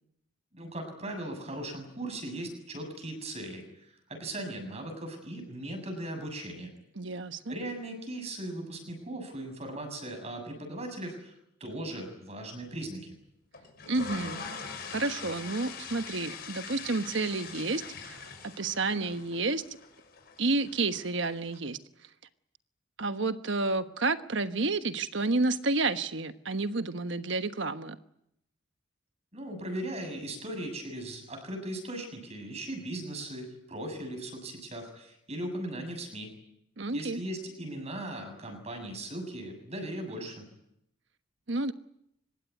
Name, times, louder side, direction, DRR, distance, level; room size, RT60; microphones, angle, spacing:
voice 1, 0.5-3.6 4.1-6.7 7.5-11.3 11.6-13.2 29.3-36.3 36.9-40.4, right 1 dB, 35° right, 5 dB, 7.4 m, -38 dB
voice 2, 6.9-7.6 13.8-14.4 14.8-19.6 20.4-21.8 23.0-28.0 36.8-37.2 41.5-41.7, right 3 dB, 65° right, 10 dB, 1.3 m, -30 dB
sound 1, 13.5-21.6, left 5 dB, 50° left, 6.2 m, -43 dB
25.0 x 21.0 x 9.6 m, 0.77 s
head